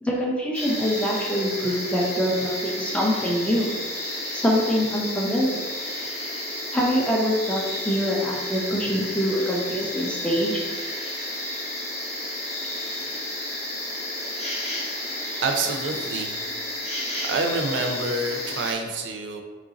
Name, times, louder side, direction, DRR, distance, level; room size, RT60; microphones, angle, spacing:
voice 1, 0.0-3.7 4.3-5.7 6.7-10.6, equal, 5° left, -2 dB, 0.5 m, -24 dB
sound 1, 0.5-18.7, left 1 dB, 35° left, 0.8 m, -32 dB
voice 2, 15.4-16.4 17.3-19.4, right 3 dB, 75° right, 4 dB, 0.4 m, -27 dB
3.0 x 2.5 x 3.8 m, 1.5 s
head